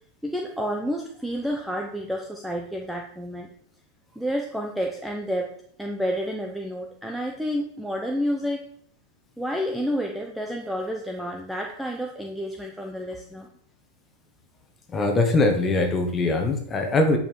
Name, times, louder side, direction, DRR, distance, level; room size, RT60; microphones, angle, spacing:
voice 1, 0.2-3.5 4.1-8.7 9.4-13.5, equal, ahead, 1 dB, 0.8 m, -30 dB
voice 2, 14.9-17.2, left 2 dB, 15° left, 4 dB, 1.4 m, -22 dB
8.3 x 5.5 x 4.7 m, 0.63 s
supercardioid pair, 150°, 0 cm